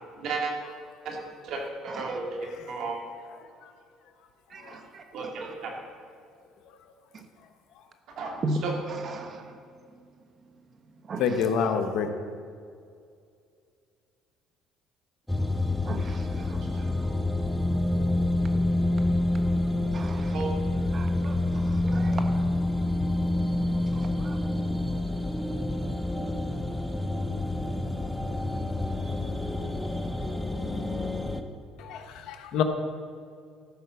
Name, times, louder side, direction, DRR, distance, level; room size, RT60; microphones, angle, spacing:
voice 1, 0.2-0.5 1.0-1.2 1.4-2.4 2.7-3.0 5.1-5.7 8.2-8.7 20.3-20.5 30.9-31.3, right 4 dB, 65° right, 0 dB, 2.3 m, -33 dB
voice 2, 1.9-2.2 4.5-5.5 7.1-7.3 8.4-9.6 9.9-10.0 11.0-11.4 11.7-11.8 15.8-17.1 17.7-20.4 20.9-22.5 23.9-24.5, right 2 dB, 45° right, 6 dB, 1.3 m, -39 dB
voice 3, 3.4-3.7 4.6-4.8 11.2-12.1 31.8-32.6, left 7 dB, 70° left, 7 dB, 1.0 m, -28 dB
sound 1, 15.3-31.4, left 1 dB, 10° left, 0.8 m, -27 dB
13.5 x 5.5 x 7.0 m, 2.3 s
supercardioid pair, 85°, 0 cm